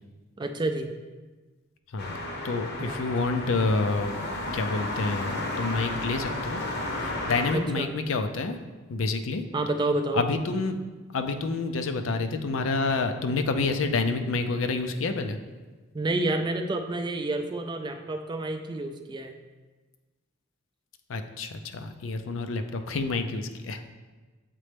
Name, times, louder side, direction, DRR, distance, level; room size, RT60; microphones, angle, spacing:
voice 1, 0.4-0.9 2.8-3.1 7.5-7.9 9.5-10.2 15.9-19.4, right 2 dB, 20° right, 6 dB, 0.3 m, -29 dB
sound 1, 2.0-7.5, left 1 dB, 55° left, 0.8 m, -33 dB
voice 2, 2.4-4.2 4.5-6.6 6.9-8.6 8.9-9.4 10.1-10.8 11.1-15.4 21.1-23.9, left 3 dB, 75° left, 7 dB, 0.5 m, -28 dB
7.4 x 4.1 x 3.3 m, 1.3 s
head